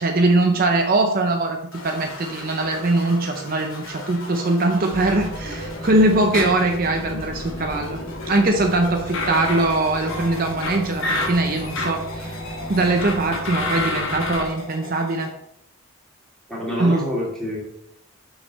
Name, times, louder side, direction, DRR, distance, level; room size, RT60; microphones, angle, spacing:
voice 1, 0.0-8.0 8.3-12.4 12.7-15.3 16.8-17.0, right 2 dB, 40° right, 3 dB, 0.6 m, -21 dB
sound 1, 1.7-15.3, left 1 dB, 75° left, 2.0 m, -38 dB
sound 2, 4.9-14.4, left 1 dB, 60° left, 1.3 m, -30 dB
voice 2, 16.5-17.6, left 1 dB, 5° left, -6 dB, 2.4 m, -26 dB
6.5 x 5.9 x 4.0 m, 0.73 s
head